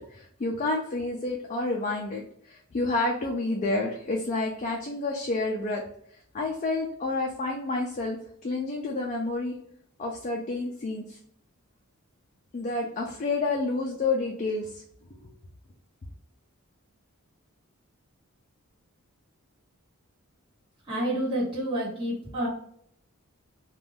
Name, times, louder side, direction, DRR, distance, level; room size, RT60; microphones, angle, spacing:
voice 1, 0.0-5.8 6.3-9.5 10.0-11.2 12.5-14.8, left 2 dB, 35° left, -1 dB, 0.3 m, -29 dB
voice 2, 20.9-22.5, right 1 dB, 25° right, -10 dB, 1.2 m, -29 dB
2.5 x 2.2 x 3.3 m, 0.65 s
head